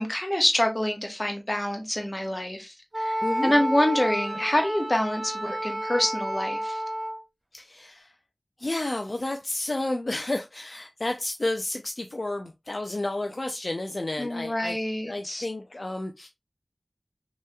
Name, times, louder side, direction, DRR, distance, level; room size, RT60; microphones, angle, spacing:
voice 1, 0.0-6.8 14.2-15.5, left 1 dB, 30° left, 1.0 m, -26 dB
Wind instrument woodwind instrument, 2.9-7.2, right 1 dB, 25° right, 0.9 m, -30 dB
voice 2, 3.2-3.5 7.5-8.2 8.6-14.8 15.0-16.3, left 2 dB, 65° left, 0.3 m, -31 dB
3.1 x 2.9 x 2.3 m
wide cardioid pair, 40°, 0 cm